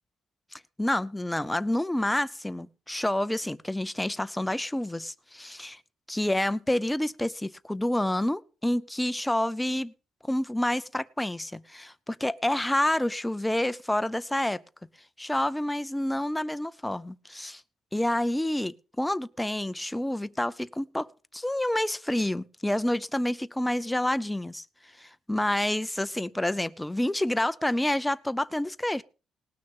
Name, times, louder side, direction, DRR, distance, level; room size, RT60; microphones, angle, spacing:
voice 1, 0.8-5.8 6.1-9.9 10.3-14.6 15.2-17.6 17.9-21.1 21.3-24.7 25.0-29.0, left 1 dB, 5° left, 0.6 m, -28 dB
19.0 x 6.4 x 5.4 m
cardioid pair, 125°, 0 cm